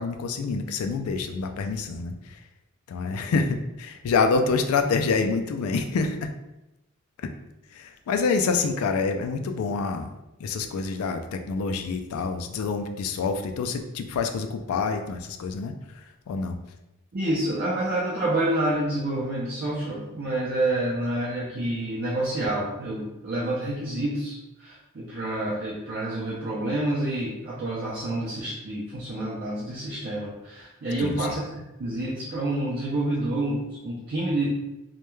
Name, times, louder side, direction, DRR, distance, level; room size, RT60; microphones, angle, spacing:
voice 1, 0.0-2.4 2.9-6.3 7.7-10.1 10.4-15.7 16.3-16.6 31.0-31.4, left 4 dB, 90° left, 6 dB, 0.3 m, -27 dB
voice 2, 17.1-34.5, right 1 dB, 50° right, -6 dB, 0.4 m, -28 dB
2.2 x 2.2 x 3.0 m, 0.95 s
head